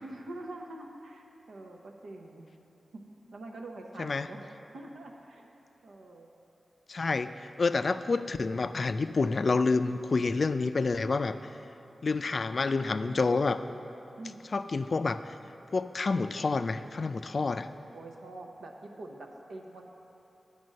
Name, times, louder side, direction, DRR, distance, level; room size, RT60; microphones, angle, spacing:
voice 1, 0.0-2.4 3.3-4.5 4.7-5.4 5.8-6.3 14.2-14.4 17.9-19.8, right 2 dB, 90° right, 1 dB, 0.8 m, -45 dB
voice 2, 6.9-11.4 12.0-13.6 14.5-15.2 15.7-17.7, left 4 dB, 60° left, 11 dB, 0.3 m, -28 dB
9.4 x 5.2 x 6.4 m, 3.0 s
cardioid pair, 50°, 0 cm